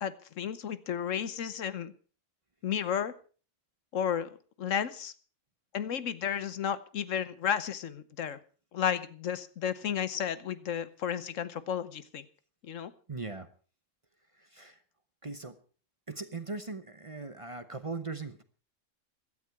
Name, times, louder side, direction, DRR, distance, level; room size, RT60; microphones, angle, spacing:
voice 1, 0.0-1.9 2.6-3.1 3.9-4.3 4.6-5.1 5.7-8.4 8.7-12.2 12.6-12.9, left 8 dB, 75° left, 14 dB, 1.2 m, -33 dB
voice 2, 13.1-13.5 14.3-14.8 15.2-15.6 16.1-18.4, right 3 dB, 30° right, 10 dB, 0.9 m, -39 dB
16.5 x 12.5 x 4.6 m, 0.38 s
omnidirectional pair, 1.3 m